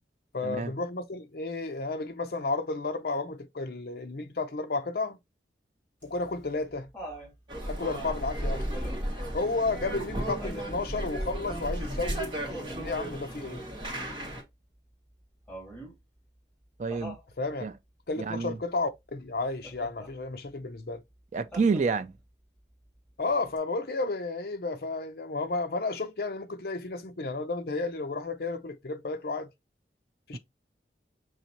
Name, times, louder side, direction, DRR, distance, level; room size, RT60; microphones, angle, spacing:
voice 1, 0.3-5.2 6.0-6.9 7.7-8.7 9.3-13.6 17.4-17.6 18.1-21.0 23.2-29.5 30.3-30.4, left 3 dB, 55° left, 0.6 m, -32 dB
Laughter, 6.0-7.3 8.7-9.2 10.4-10.8 12.4-13.0 15.5-16.0 16.9-17.3 19.6-20.1 21.5-22.2 23.6-23.7, right 1 dB, 10° left, 2.4 m, -43 dB
sound 1, 7.5-14.4, right 1 dB, 25° right, 1.4 m, -34 dB
voice 2, 16.8-17.2 17.6-17.7 18.2-18.6 21.3-22.1 30.3-30.4, right 4 dB, 40° right, 0.4 m, -28 dB
5.6 x 3.0 x 2.8 m
head